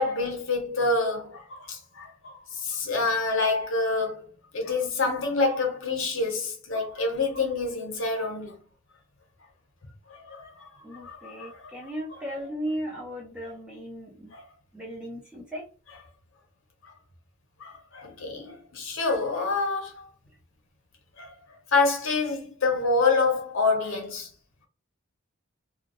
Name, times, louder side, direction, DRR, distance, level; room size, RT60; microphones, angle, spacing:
voice 1, 0.0-4.2 4.5-8.6 10.1-10.7 11.0-11.7 14.3-14.4 15.9-16.0 16.8-16.9 17.6-20.1 21.2-21.3 21.7-24.3, left 3 dB, 70° left, 0.7 m, -27 dB
voice 2, 10.8-14.3 14.7-15.6, equal, 5° right, 0.9 m, -36 dB
2.3 x 2.2 x 2.9 m
head